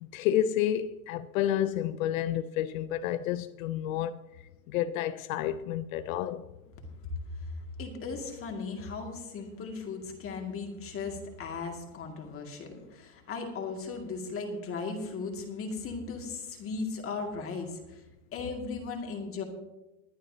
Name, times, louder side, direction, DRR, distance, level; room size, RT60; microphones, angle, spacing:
voice 1, 0.0-4.2 4.7-6.4, left 11 dB, 60° left, 0.6 m, -30 dB
voice 2, 7.4-18.0 18.3-19.4, left 4 dB, 30° left, 2.3 m, -37 dB
22.0 x 9.9 x 2.8 m
supercardioid pair, 125°, 47 cm